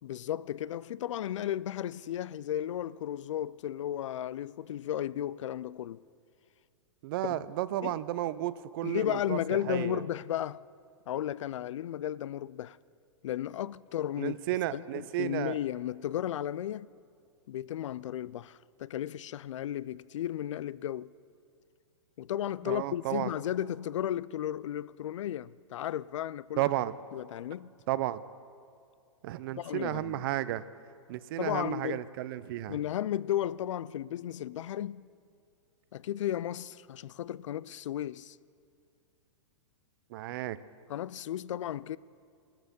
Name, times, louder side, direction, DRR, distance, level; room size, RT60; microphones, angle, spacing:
voice 1, 0.0-6.0 7.2-7.4 7.8-8.0 8.8-10.6 11.1-12.8 13.2-14.4 14.7-16.9 17.5-21.1 22.2-26.7 27.1-27.7 29.5-30.2 31.4-32.1 32.7-35.1 35.9-38.4 40.9-42.0, left 11 dB, 75° left, 0.4 m, -34 dB
voice 2, 7.0-10.0 14.2-15.6 22.6-23.3 26.6-26.9 27.9-28.2 29.2-30.6 31.1-32.8 40.1-40.6, right 14 dB, 45° right, 0.6 m, -33 dB
17.0 x 13.5 x 5.3 m
hypercardioid pair, 140°, 16 cm